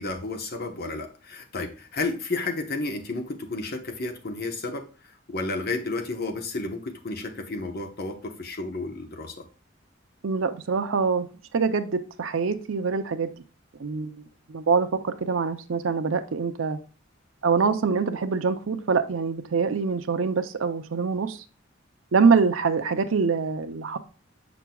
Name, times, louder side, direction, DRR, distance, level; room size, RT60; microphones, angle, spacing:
voice 1, 0.0-9.5, left 3 dB, 55° left, 1.0 m, -32 dB
voice 2, 10.2-11.3 11.5-13.3 13.8-16.8 17.4-21.4 22.1-24.0, right 5 dB, 85° right, 0.6 m, -24 dB
6.8 x 6.0 x 2.3 m
head